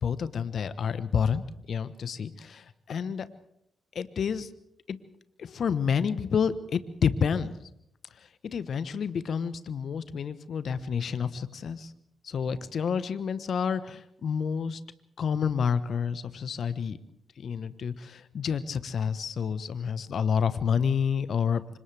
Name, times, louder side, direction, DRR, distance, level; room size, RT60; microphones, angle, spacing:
voice 1, 0.0-3.3 3.9-4.5 4.9-5.0 5.4-7.5 8.4-11.9 12.2-14.8 15.2-17.0 17.4-21.8, left 6 dB, 60° left, 14 dB, 1.2 m, -29 dB
29.5 x 25.5 x 3.5 m, 0.75 s
hypercardioid pair, 40°, 0 cm